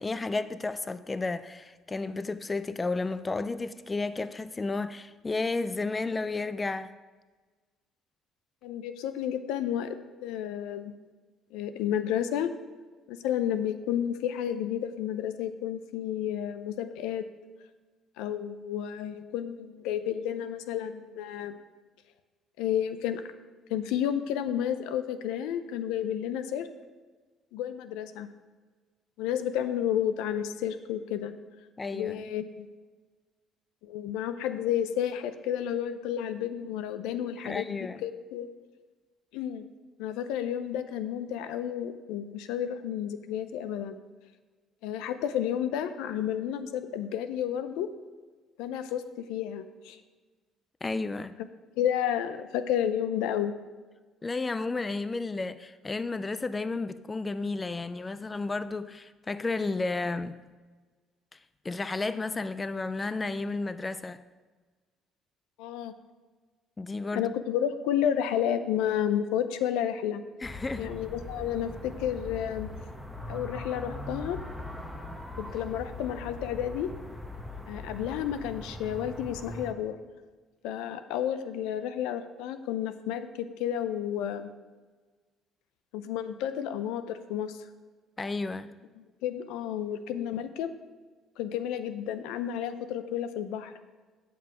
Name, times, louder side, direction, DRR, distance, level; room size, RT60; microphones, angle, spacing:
voice 1, 0.0-6.9 31.8-32.2 37.4-38.0 50.8-51.4 54.2-60.4 61.3-61.4 61.6-64.2 66.8-67.3 70.4-70.9 88.2-88.7, left 3 dB, 25° left, 0.4 m, -32 dB
voice 2, 8.6-10.9 11.5-12.5 13.1-17.3 18.2-21.6 22.6-23.2 23.7-26.7 27.5-28.3 29.2-31.3 31.9-32.7 33.8-38.5 39.3-39.7 40.0-44.0 44.8-47.9 48.6-50.0 51.8-53.5 65.6-65.9 67.1-70.2 70.8-72.7 73.3-74.4 75.4-76.9 77.7-80.0 80.6-84.5 85.9-87.6 89.0-90.7 91.4-93.7, left 10 dB, 85° left, 0.5 m, -31 dB
sound 1, 70.4-79.7, left 1 dB, 5° left, 1.0 m, -41 dB
9.1 x 6.0 x 4.9 m
supercardioid pair, 75°, 0 cm